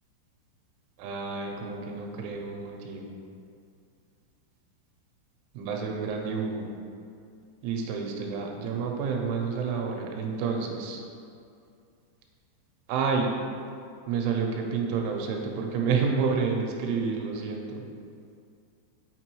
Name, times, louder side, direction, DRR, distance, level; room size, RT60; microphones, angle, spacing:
voice 1, 1.0-3.1 5.5-6.7 7.6-11.0 12.9-13.3 14.1-17.8, right 5 dB, 90° right, 1 dB, 3.1 m, -29 dB
6.7 x 5.9 x 3.0 m, 2.4 s
omnidirectional pair, 5.5 m